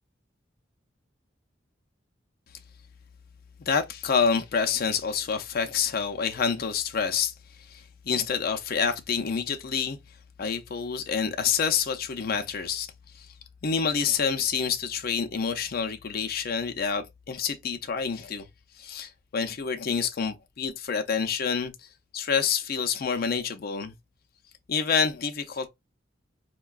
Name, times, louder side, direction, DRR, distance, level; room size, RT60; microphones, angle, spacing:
voice 1, 3.6-7.3 7.7-10.0 10.4-13.3 13.6-18.5 18.8-21.9 22.1-23.9 24.7-25.7, left 6 dB, 50° left, 0.4 m, -28 dB
4.4 x 2.2 x 2.3 m
head